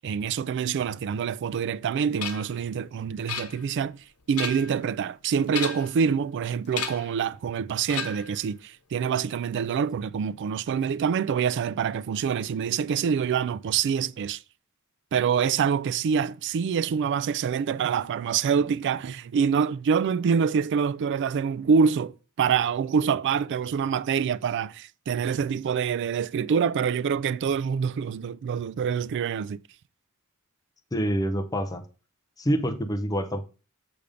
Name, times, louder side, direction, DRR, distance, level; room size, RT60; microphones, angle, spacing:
voice 1, 0.0-14.4 15.1-29.6, right 6 dB, 55° right, 0.3 m, -26 dB
sound 1, 2.2-2.6 3.3-3.9 4.2-4.8 5.5-6.0 6.7-7.2 7.9-8.4, left 7 dB, 85° left, 1.0 m, -33 dB
voice 2, 30.9-31.8 32.4-33.4, equal, 15° left, 0.6 m, -26 dB
6.8 x 3.5 x 5.1 m
head